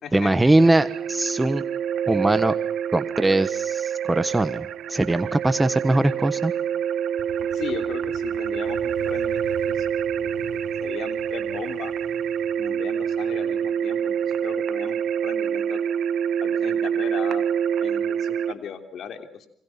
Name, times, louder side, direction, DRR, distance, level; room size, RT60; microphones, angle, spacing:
voice 1, 0.1-1.6 2.1-2.5 2.9-6.5, right 2 dB, 15° right, 11 dB, 1.4 m, -21 dB
sound 1, 0.6-18.5, right 8 dB, 75° right, 1.1 m, -26 dB
Motorcycle, 7.2-14.8, left 7 dB, 85° left, 7.8 m, -45 dB
voice 2, 7.5-9.9 10.1-10.3 10.8-11.9 12.6-15.0 15.2-15.8 16.4-17.4 17.8-19.5, left 7 dB, 70° left, 7 dB, 3.2 m, -37 dB
28.5 x 24.5 x 5.9 m, 0.67 s
cardioid pair, 90°, 0 cm